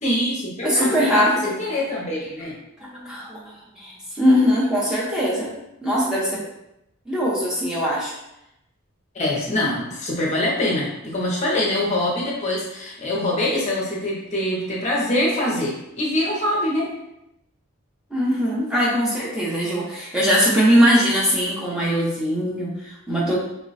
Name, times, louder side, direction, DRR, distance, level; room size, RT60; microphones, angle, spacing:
voice 1, 0.0-1.2 1.6-2.5 9.1-16.9, left 1 dB, 30° left, -3 dB, 0.7 m, -24 dB
voice 2, 0.6-1.5 2.8-3.4 3.7-5.5 5.8-6.4 7.1-8.1 18.1-23.4, equal, 5° right, -6 dB, 0.7 m, -21 dB
3.1 x 2.2 x 4.0 m, 0.87 s
head